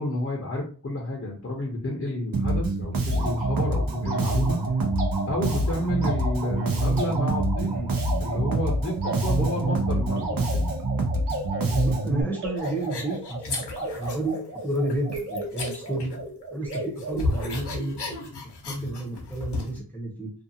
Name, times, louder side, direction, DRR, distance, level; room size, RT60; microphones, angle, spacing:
voice 1, 0.0-4.6 5.3-7.7 8.2-10.7, left 1 dB, 35° left, -1 dB, 0.7 m, -30 dB
Bass guitar, 2.3-12.2, right 2 dB, 55° right, 0.6 m, -26 dB
sound 1, 3.1-18.3, right 2 dB, 80° right, 0.9 m, -35 dB
voice 2, 7.6-7.9 9.2-9.5 11.6-14.4 14.6-16.2 16.5-18.0 18.7-20.3, right 1 dB, 5° left, -3 dB, 0.8 m, -31 dB
sound 2, 12.6-14.4 14.7-16.4 16.7-19.8, left 3 dB, 80° left, 0.8 m, -34 dB
2.5 x 2.4 x 2.7 m, 0.39 s
wide cardioid pair, 80°, 41 cm